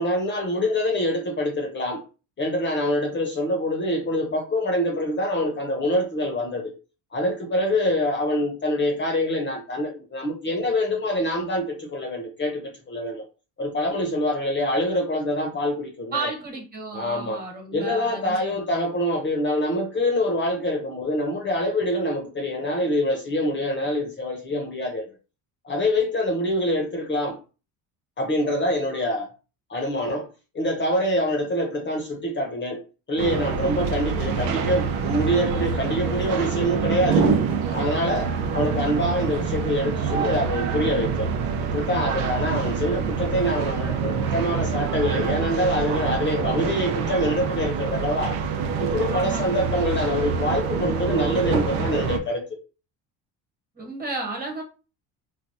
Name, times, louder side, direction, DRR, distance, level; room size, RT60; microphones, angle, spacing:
voice 1, 0.0-2.0 2.4-6.7 7.1-13.2 13.6-16.3 16.9-17.4 17.7-25.1 25.6-27.4 28.2-29.3 29.7-30.3 30.5-32.8 33.1-37.3 37.7-41.3 41.6-48.4 48.8-52.4, left 1 dB, 30° left, 3 dB, 0.7 m, -25 dB
voice 2, 16.1-18.6 49.1-49.6 53.8-54.6, right 3 dB, 25° right, 1 dB, 1.2 m, -33 dB
sound 1, 33.2-52.2, right 6 dB, 75° right, 0.6 m, -26 dB
3.2 x 2.2 x 2.6 m, 0.33 s
cardioid pair, 105°, 38 cm